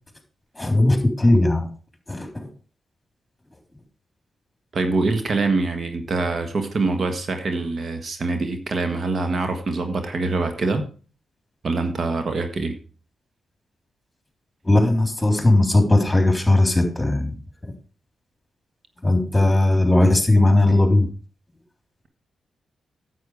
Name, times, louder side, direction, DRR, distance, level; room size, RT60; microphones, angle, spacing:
voice 1, 0.6-1.7 2.1-2.5 14.6-17.4 17.6-17.7 19.0-21.1, left 2 dB, 15° left, 3.6 m, -18 dB
voice 2, 4.7-10.8 11.6-12.8, right 3 dB, 55° right, 1.5 m, -24 dB
9.5 x 8.4 x 4.9 m
supercardioid pair, 50°, 0 cm